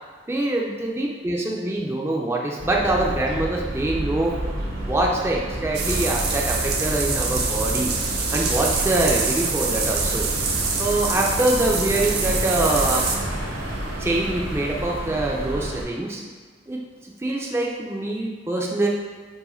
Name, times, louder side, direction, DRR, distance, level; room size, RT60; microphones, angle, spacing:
voice 1, 0.3-4.4 4.8-7.9 8.3-10.3 10.8-13.1 14.0-16.2 16.7-18.9, right 2 dB, 15° right, -1 dB, 0.4 m, -24 dB
sound 1, 2.6-15.8, right 1 dB, 80° right, 1.5 m, -30 dB
sound 2, 5.7-13.2, right 4 dB, 55° right, 0.8 m, -25 dB
4.8 x 4.6 x 4.3 m, 1.5 s
head